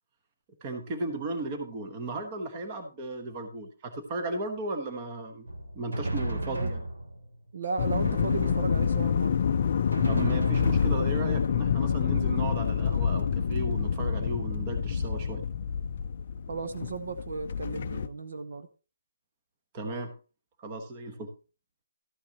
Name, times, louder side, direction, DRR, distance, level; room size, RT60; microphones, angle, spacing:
voice 1, 0.6-5.5 5.7-6.8 10.0-15.4 19.7-20.1 20.6-21.3, right 2 dB, 20° right, 5 dB, 1.1 m, -35 dB
Drum, 5.5-7.3 7.9-9.2 9.9-11.4, right 1 dB, 85° right, 3.1 m, -34 dB
voice 2, 6.3-6.7 7.5-9.4 16.5-18.7, right 4 dB, 50° right, 8 dB, 0.9 m, -35 dB
sound 1, 7.8-18.1, left 7 dB, 35° left, 0.5 m, -27 dB
13.0 x 9.3 x 2.9 m, 0.33 s
hypercardioid pair, 175°, 0 cm